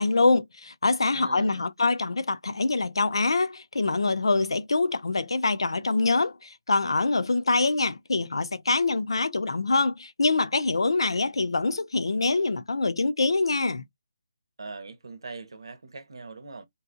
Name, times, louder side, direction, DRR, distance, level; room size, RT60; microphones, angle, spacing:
voice 1, 0.0-13.8, left 3 dB, 90° left, 0.5 m, -25 dB
voice 2, 1.1-1.6 14.6-16.7, right 3 dB, 75° right, 0.8 m, -41 dB
3.9 x 2.3 x 2.5 m
hypercardioid pair, 175°, 3 cm